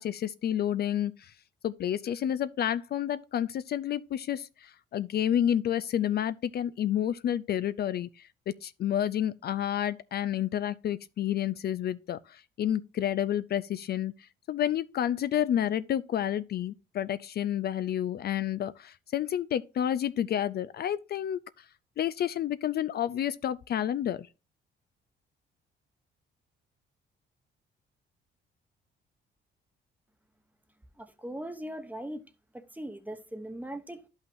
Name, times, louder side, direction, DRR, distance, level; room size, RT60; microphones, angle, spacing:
voice 1, 0.0-1.3 1.6-21.6 22.0-24.3, left 10 dB, 55° left, 0.4 m, -30 dB
voice 2, 31.0-32.2 32.5-34.1, right 1 dB, 10° right, 1.0 m, -40 dB
11.5 x 5.6 x 2.6 m
cardioid pair, 90°, 20 cm